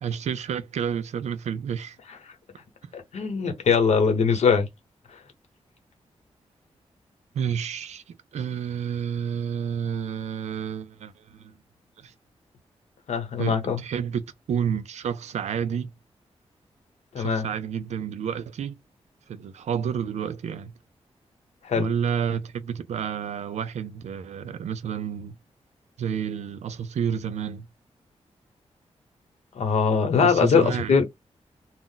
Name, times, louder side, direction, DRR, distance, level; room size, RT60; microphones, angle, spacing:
voice 1, 0.0-2.0 7.3-11.6 12.0-12.1 13.4-15.9 17.2-18.8 19.3-20.7 21.8-25.4 26.0-27.7 30.2-30.9, right 7 dB, 85° right, 0.4 m, -30 dB
voice 2, 2.9-4.7 13.1-13.8 17.1-17.5 21.6-21.9 29.5-31.0, left 5 dB, 80° left, 0.9 m, -22 dB
2.4 x 2.1 x 3.8 m
wide cardioid pair, 115°, 11 cm